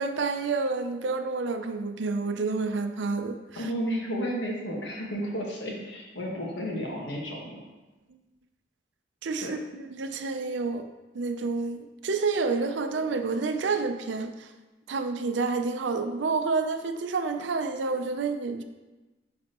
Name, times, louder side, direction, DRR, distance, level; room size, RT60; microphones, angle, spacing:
voice 1, 0.0-3.7 9.2-10.9 11.1-14.5 14.9-18.6, right 4 dB, 85° right, 8 dB, 0.5 m, -29 dB
voice 2, 3.5-7.6 9.4-9.5, equal, 75° left, -2 dB, 1.4 m, -32 dB
9.5 x 4.2 x 3.0 m, 1.1 s
head